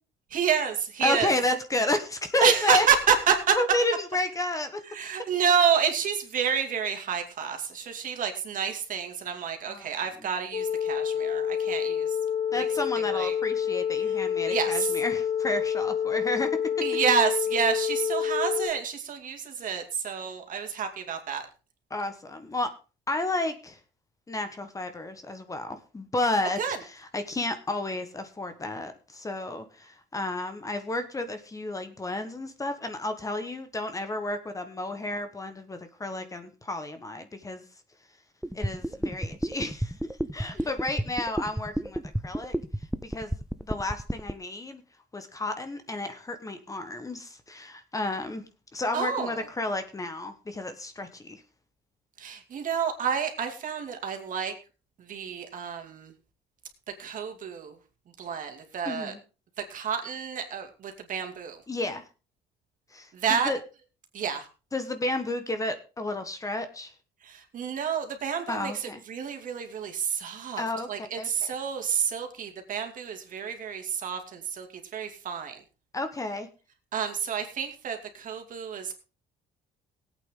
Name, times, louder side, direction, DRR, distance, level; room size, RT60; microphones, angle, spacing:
voice 1, 0.3-1.3 2.4-3.6 4.9-12.1 12.5-12.7 13.0-13.3 14.5-14.9 16.8-21.5 26.6-26.8 40.6-40.7 48.9-49.5 52.2-54.5 55.1-56.1 57.0-57.7 58.2-59.1 59.7-61.6 63.1-63.5 64.1-64.5 67.2-74.7 74.9-75.6 76.9-78.9, right 7 dB, 50° right, 5 dB, 2.6 m, -29 dB
voice 2, 1.0-2.9 3.5-4.8 9.7-9.9 12.5-16.6 21.9-22.7 23.1-23.8 24.3-37.6 38.5-40.0 40.3-42.5 43.0-43.3 43.6-44.8 45.1-48.4 48.7-51.4 58.8-59.2 61.7-62.1 62.9-63.6 64.7-66.9 68.5-69.0 70.6-71.6 75.9-76.5, left 2 dB, 20° left, 8 dB, 1.4 m, -31 dB
sound 1, 10.5-18.7, left 8 dB, 50° left, 2.2 m, -28 dB
sound 2, 38.4-44.3, right 1 dB, 5° right, 0.5 m, -30 dB
18.5 x 8.6 x 3.8 m, 0.33 s
cardioid pair, 110°, 17 cm